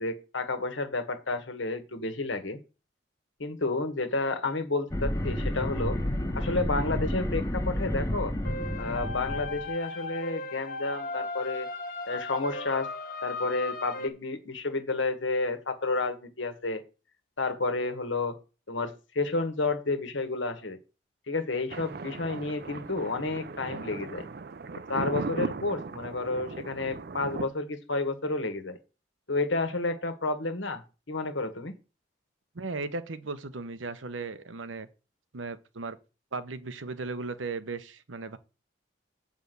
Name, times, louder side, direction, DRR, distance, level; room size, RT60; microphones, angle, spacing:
voice 1, 0.0-2.6 3.4-6.0 6.3-8.3 8.8-11.7 12.0-12.9 13.2-16.8 17.4-18.4 18.7-20.8 21.3-24.3 24.9-28.8 29.3-31.7, left 3 dB, 80° left, 1.5 m, -31 dB
sound 1, 4.9-9.7, left 1 dB, 15° left, 0.9 m, -30 dB
sound 2, 8.4-14.1, left 3 dB, 45° left, 1.2 m, -37 dB
Thunder, 21.7-27.5, right 4 dB, 55° right, 0.5 m, -37 dB
voice 2, 32.5-34.9 35.3-36.0 36.3-38.4, right 3 dB, 90° right, 0.9 m, -36 dB
7.8 x 5.0 x 6.8 m
head